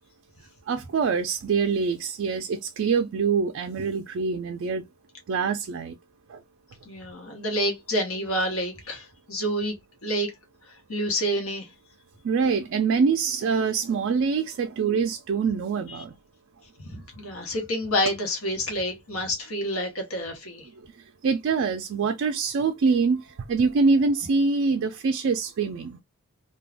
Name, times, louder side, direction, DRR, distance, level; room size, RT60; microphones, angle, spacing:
voice 1, 0.7-4.8 5.3-5.9 6.3-6.4 12.2-16.1 21.2-26.0, right 5 dB, 60° right, 0.3 m, -24 dB
voice 2, 6.9-9.7 10.0-10.3 10.9-11.7 16.8-20.7, equal, 85° left, 0.9 m, -28 dB
2.4 x 2.2 x 3.2 m
head